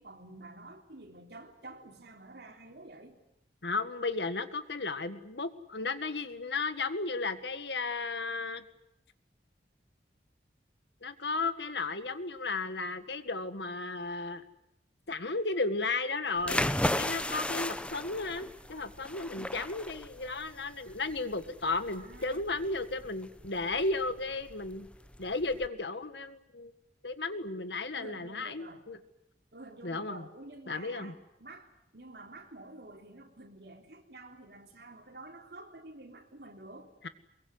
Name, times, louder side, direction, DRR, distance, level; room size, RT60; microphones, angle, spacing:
voice 1, 0.0-3.2 21.8-22.4 27.9-28.8 29.5-36.9, right 2 dB, 65° right, 2 dB, 3.6 m, -49 dB
voice 2, 3.6-8.6 11.0-14.4 15.1-16.7 16.9-24.9 25.2-26.7 27.0-29.0 29.8-30.3 30.7-31.1, left 3 dB, 75° left, 11 dB, 1.8 m, -34 dB
sound 1, 16.4-25.7, left 1 dB, 5° left, 0.9 m, -36 dB
23.0 x 23.0 x 9.7 m, 0.82 s
head